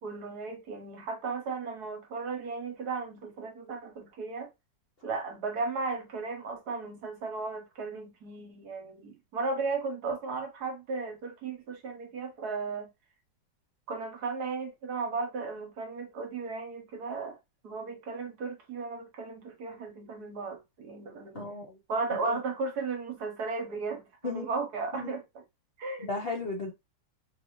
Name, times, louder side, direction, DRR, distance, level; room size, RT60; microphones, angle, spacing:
voice 1, 0.0-4.5 5.0-12.9 13.9-17.4 17.6-21.4 21.9-25.2 25.8-26.1, right 4 dB, 60° right, 1.4 m, -35 dB
voice 2, 21.3-21.8 22.2-22.4 24.2-24.5 24.9-25.1 26.0-26.7, left 3 dB, 55° left, 0.6 m, -35 dB
5.0 x 2.7 x 3.0 m
omnidirectional pair, 2.0 m